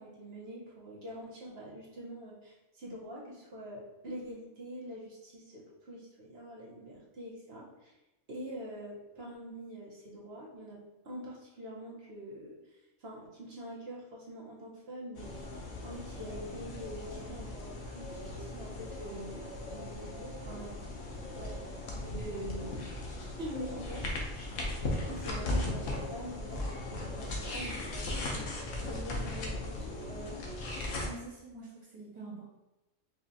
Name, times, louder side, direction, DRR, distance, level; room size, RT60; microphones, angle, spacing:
voice 1, 0.0-7.9 8.3-12.6 13.0-15.5 15.8-20.9 21.3-21.8 22.1-22.9 23.4-24.1 25.0-30.4, equal, 55° right, -4 dB, 1.2 m, -45 dB
sound 1, 15.2-31.1, left 2 dB, 75° left, 1.1 m, -38 dB
voice 2, 31.0-32.5, right 2 dB, 25° right, -7 dB, 1.1 m, -46 dB
5.1 x 2.4 x 2.7 m, 0.99 s
omnidirectional pair, 1.3 m